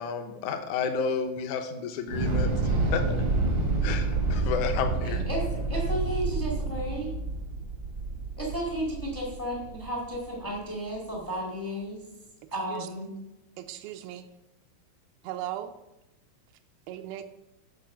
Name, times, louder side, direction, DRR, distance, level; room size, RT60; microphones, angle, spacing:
voice 1, 0.0-2.5 2.9-3.1 3.8-5.2, left 6 dB, 75° left, 7 dB, 1.9 m, -31 dB
Thunder / Explosion, 2.1-10.3, right 3 dB, 70° right, 1.1 m, -28 dB
voice 2, 5.0-7.1 8.4-12.0 12.5-13.1, right 1 dB, 20° left, -2 dB, 0.3 m, -33 dB
voice 3, 13.6-14.3 15.2-15.7 16.9-17.2, right 12 dB, 90° right, 6 dB, 2.4 m, -37 dB
9.3 x 4.8 x 6.1 m, 0.93 s
omnidirectional pair, 4.2 m